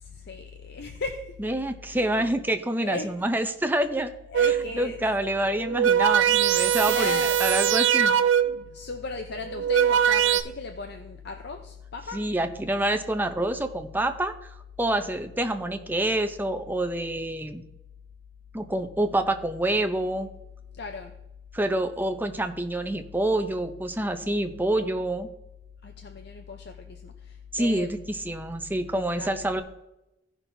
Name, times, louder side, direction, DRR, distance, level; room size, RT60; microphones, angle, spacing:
voice 1, 0.0-1.6 1.8-2.3 2.8-3.1 4.3-5.0 6.8-7.4 8.7-12.2 20.8-21.1 25.8-28.0 28.7-29.5, left 3 dB, 60° left, 5 dB, 0.7 m, -37 dB
voice 2, 1.4-4.1 4.4-4.5 4.7-8.2 12.1-14.5 14.8-17.6 18.5-20.3 21.5-25.3 27.5-29.6, right 1 dB, 10° right, 6 dB, 0.6 m, -27 dB
sound 1, 4.3-4.8 5.5-8.7 9.4-10.4, right 9 dB, 80° right, 0.5 m, -22 dB
16.5 x 5.9 x 2.7 m, 0.91 s
head